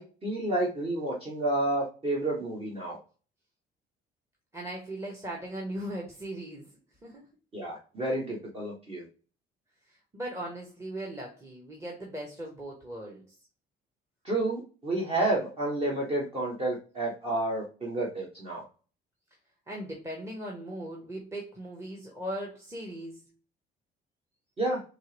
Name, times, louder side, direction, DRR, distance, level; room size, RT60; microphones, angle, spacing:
voice 1, 0.0-3.0 7.5-9.0 14.2-18.6 24.6-24.8, right 2 dB, 35° right, -3 dB, 1.4 m, -30 dB
voice 2, 4.5-6.7 7.0-7.2 9.9-13.2 19.7-23.2, right 1 dB, 15° right, -1 dB, 1.1 m, -38 dB
4.4 x 3.0 x 3.3 m, 0.36 s
cardioid pair, 110°, 17 cm